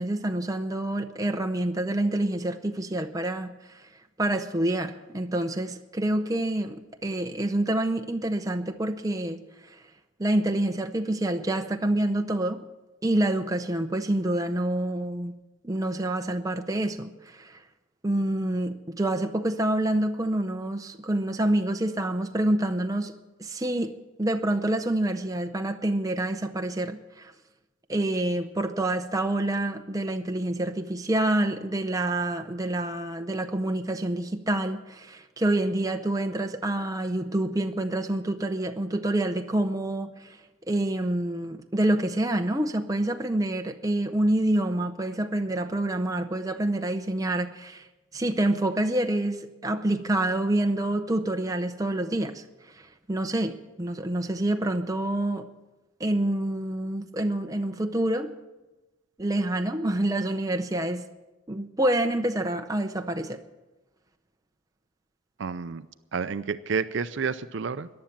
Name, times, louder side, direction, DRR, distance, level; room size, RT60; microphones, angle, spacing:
voice 1, 0.0-9.9 10.2-12.6 13.0-15.4 15.6-17.6 18.0-27.3 27.9-55.5 56.0-58.4 59.2-61.1 61.5-63.4, right 1 dB, 15° right, 0.6 m, -27 dB
voice 2, 65.4-65.9 66.1-67.9, right 5 dB, 60° right, 0.5 m, -30 dB
14.5 x 10.5 x 7.3 m
head